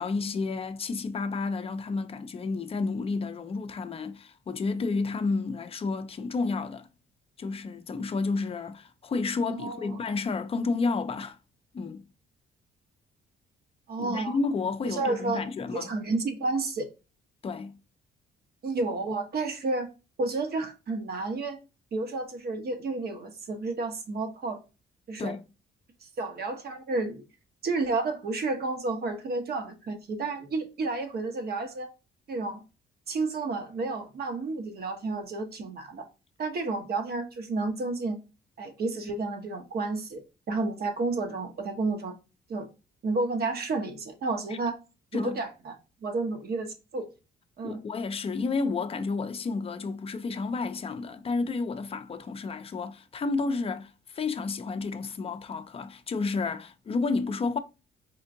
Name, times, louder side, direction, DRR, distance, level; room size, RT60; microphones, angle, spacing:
voice 1, 0.0-6.9 7.4-11.4 11.7-12.0 14.0-15.9 17.4-17.8 25.2-25.4 45.1-45.4 47.6-57.6, left 4 dB, 30° left, 0.4 m, -31 dB
voice 2, 9.5-10.0 13.9-14.4 14.9-15.4 15.7-16.9 18.6-19.9 20.2-21.6 21.9-24.6 25.1-25.3 26.0-27.2 27.6-31.9 32.3-32.6 33.1-36.1 36.4-38.2 38.6-40.2 40.5-42.1 42.5-42.7 43.0-44.8 45.1-45.7 46.0-47.1 47.6-47.8, right 3 dB, 50° right, 0.9 m, -31 dB
4.5 x 2.5 x 2.5 m
cardioid pair, 90°, 20 cm